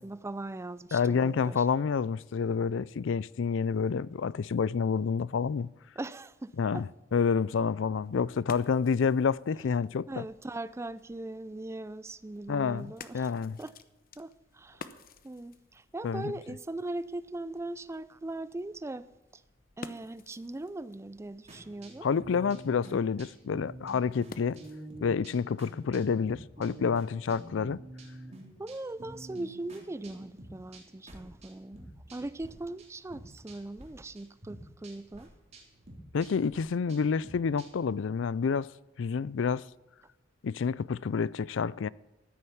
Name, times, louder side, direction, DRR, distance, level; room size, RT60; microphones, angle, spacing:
voice 1, 0.0-1.7 6.0-6.9 10.1-13.3 13.6-13.7 14.2-14.9 15.2-19.1 19.3-19.4 19.8-22.1 28.6-35.3, right 2 dB, 15° right, 0.4 m, -40 dB
voice 2, 0.9-5.7 6.6-10.2 12.5-13.6 16.0-16.3 22.0-24.6 25.0-27.8 36.1-38.7 39.0-39.7 40.4-41.9, left 5 dB, 70° left, 0.4 m, -28 dB
sound 1, 7.9-25.0, left 4 dB, 50° left, 0.8 m, -53 dB
sound 2, 21.5-32.5 32.8-33.9 34.1-37.9, right 1 dB, 35° right, 3.4 m, -48 dB
14.0 x 10.0 x 7.1 m
head